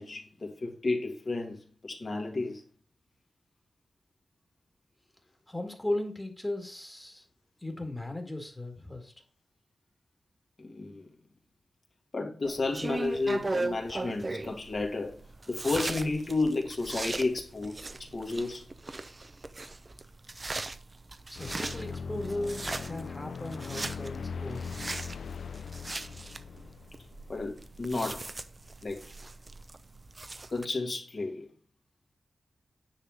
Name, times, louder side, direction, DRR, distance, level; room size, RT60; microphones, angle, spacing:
voice 1, 0.0-2.6 10.6-11.1 12.1-18.7 27.3-28.3 28.8-29.0 30.5-31.5, left 3 dB, 40° left, 2.1 m, -32 dB
voice 2, 5.5-7.2 7.6-9.1 21.3-24.9, left 1 dB, 10° left, 2.0 m, -37 dB
sound 1, 12.4-30.7, right 2 dB, 25° right, 0.6 m, -39 dB
sound 2, 21.4-28.0, left 5 dB, 70° left, 0.4 m, -40 dB
9.9 x 3.7 x 6.4 m
wide cardioid pair, 165°, 0 cm